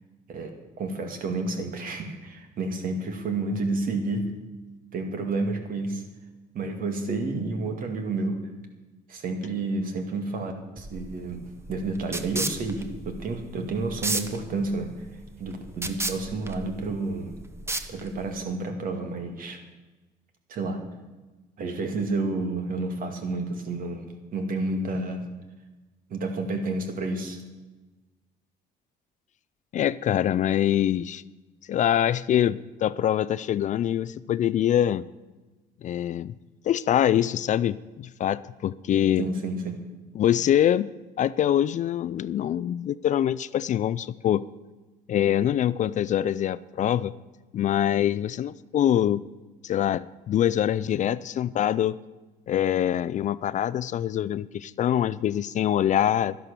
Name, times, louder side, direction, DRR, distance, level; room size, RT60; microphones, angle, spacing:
voice 1, 0.8-4.3 4.9-6.0 6.5-8.4 9.1-15.1 15.4-17.4 17.9-19.6 20.5-20.8 21.6-25.2 26.1-27.4 39.2-39.8, right 3 dB, 55° right, 6 dB, 2.2 m, -30 dB
sound 1, 10.8-18.4, right 2 dB, 15° right, 1.0 m, -34 dB
voice 2, 29.7-31.2 31.7-35.0 35.8-36.3 36.6-39.2 40.2-40.9 41.2-44.4 45.1-47.1 47.5-49.2 49.6-52.0 52.5-56.4, left 11 dB, 45° left, 17 dB, 0.4 m, -24 dB
11.5 x 11.0 x 6.9 m, 1.2 s
cardioid pair, 110°, 17 cm